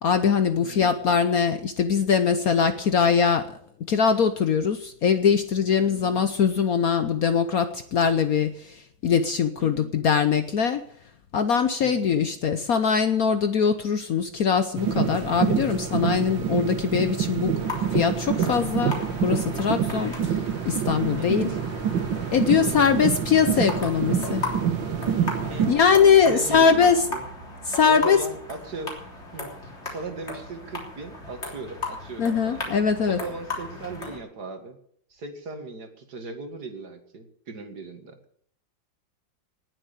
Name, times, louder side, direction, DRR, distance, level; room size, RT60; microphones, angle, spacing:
voice 1, 0.0-3.6 3.9-10.8 11.3-17.5 17.9-20.2 20.6-21.5 22.3-24.4 25.7-27.0 27.7-28.2 32.2-33.2, left 6 dB, 55° left, 10 dB, 1.1 m, -22 dB
voice 2, 0.6-0.9 5.8-6.2 9.6-9.9 11.8-12.2 20.0-20.4 21.2-21.5 22.6-23.0 25.5-25.7 26.2-27.2 27.9-28.9 29.3-32.8 33.1-34.8 35.1-38.2, right 3 dB, 55° right, 6 dB, 2.4 m, -38 dB
sound 1, 14.7-25.7, right 8 dB, 70° right, 1.9 m, -26 dB
sound 2, 17.6-34.2, left 2 dB, 35° left, 3.8 m, -37 dB
19.0 x 7.5 x 8.4 m, 0.64 s
omnidirectional pair, 2.1 m